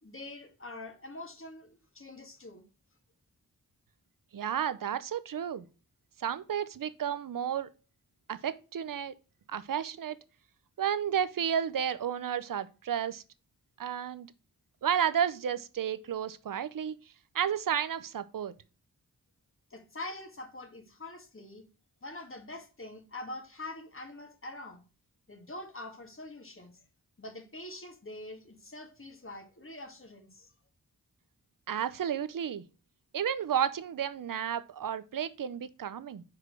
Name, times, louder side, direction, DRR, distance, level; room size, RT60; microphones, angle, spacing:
voice 1, 0.0-2.6 19.7-21.6 22.0-24.8 25.3-26.8 27.2-30.5, left 2 dB, 35° left, 2.0 m, -44 dB
voice 2, 4.3-5.6 6.2-7.7 8.3-9.1 9.5-10.2 10.8-13.2 13.8-14.3 14.8-17.0 17.3-18.5 31.7-32.6 33.1-36.2, right 8 dB, 65° right, 0.7 m, -32 dB
4.8 x 4.7 x 6.2 m
cardioid pair, 55°, 35 cm